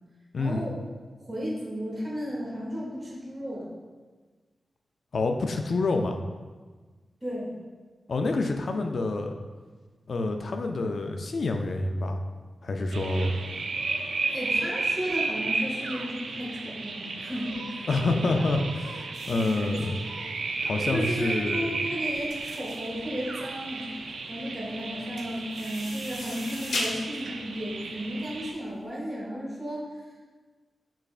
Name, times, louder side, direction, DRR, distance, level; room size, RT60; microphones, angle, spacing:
voice 1, 0.4-0.8 1.2-3.7 7.2-7.5 14.3-18.4 19.3-19.8 20.6-29.9, equal, 20° right, -5 dB, 1.0 m, -34 dB
voice 2, 5.1-6.2 8.1-9.3 10.1-12.2 12.6-13.3 17.9-20.0 20.6-21.7, left 2 dB, 55° left, 4 dB, 0.3 m, -27 dB
sound 1, 12.9-28.5, right 3 dB, 85° right, 0.4 m, -33 dB
sound 2, 19.1-28.8, left 1 dB, 75° left, 0.8 m, -39 dB
6.5 x 3.2 x 2.4 m, 1.4 s
wide cardioid pair, 130°, 0 cm